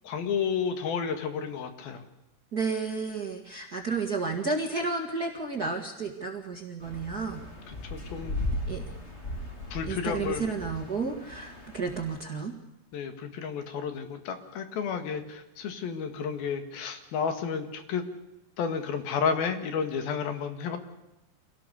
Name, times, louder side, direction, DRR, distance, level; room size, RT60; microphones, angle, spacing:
voice 1, 0.0-2.0 7.8-8.4 9.7-10.4 12.9-18.1 18.6-20.8, left 6 dB, 65° left, 8 dB, 3.4 m, -31 dB
voice 2, 2.5-7.4 8.7-8.9 9.9-12.5, right 4 dB, 40° right, 3 dB, 1.3 m, -32 dB
sound 1, 6.8-12.2, left 1 dB, 20° left, 2.6 m, -37 dB
26.5 x 17.5 x 6.9 m, 0.94 s
omnidirectional pair, 4.9 m